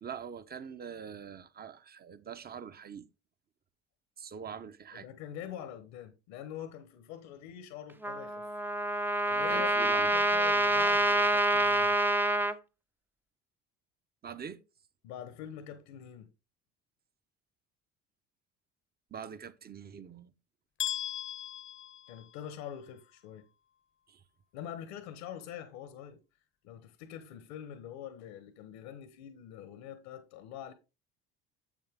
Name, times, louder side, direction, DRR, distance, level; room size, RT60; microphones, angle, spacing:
voice 1, 0.0-3.1 4.2-5.1 9.5-10.1 14.2-14.6 19.1-20.3 24.1-24.2, right 7 dB, 30° right, 0.9 m, -44 dB
voice 2, 4.9-8.5 8.9-12.0 15.0-16.3 22.1-23.5 24.5-26.2 26.6-30.7, left 10 dB, 85° left, 1.1 m, -45 dB
Trumpet, 8.0-12.5, right 1 dB, 5° right, 0.6 m, -27 dB
sound 1, 20.8-22.8, left 10 dB, 45° left, 0.7 m, -38 dB
7.4 x 7.2 x 3.6 m
supercardioid pair, 75°, 29 cm